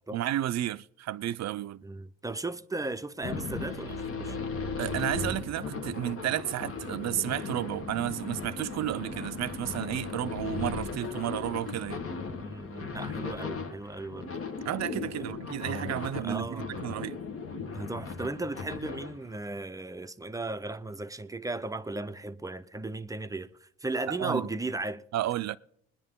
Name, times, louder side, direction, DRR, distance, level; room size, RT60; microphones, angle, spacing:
voice 1, 0.1-1.8 4.8-12.0 14.6-17.2 24.1-24.5 25.1-25.6, right 13 dB, 60° right, 0.5 m, -32 dB
voice 2, 1.8-4.4 11.7-11.8 12.4-14.4 15.2-15.3 16.2-16.7 17.7-25.0, right 2 dB, 10° right, 0.6 m, -36 dB
sound 1, 3.2-19.3, left 4 dB, 50° left, 1.2 m, -37 dB
21.0 x 10.0 x 3.7 m
cardioid pair, 90°, 30 cm